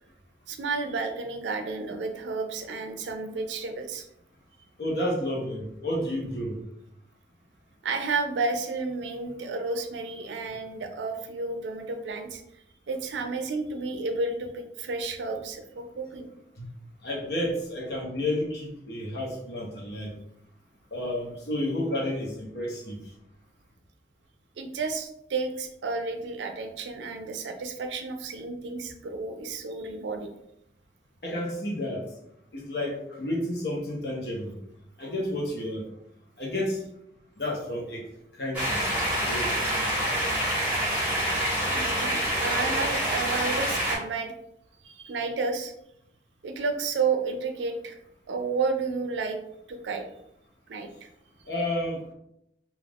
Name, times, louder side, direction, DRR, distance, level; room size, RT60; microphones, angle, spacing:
voice 1, 0.5-4.1 7.8-12.4 12.9-16.3 24.6-30.3 41.7-44.3 44.8-45.7 46.4-48.0 48.3-49.4 49.7-50.1 50.7-51.1, right 4 dB, 85° right, 5 dB, 0.4 m, -31 dB
voice 2, 4.8-6.6 16.6-16.7 17.0-20.1 20.9-23.0 31.2-32.1 32.5-34.6 35.0-35.8 36.4-36.8 37.4-38.1 38.4-39.6 51.5-52.1, left 1 dB, 65° left, -1 dB, 0.8 m, -31 dB
sound 1, 38.5-44.0, right 1 dB, 10° right, 0.8 m, -26 dB
2.4 x 2.4 x 3.3 m, 0.79 s
head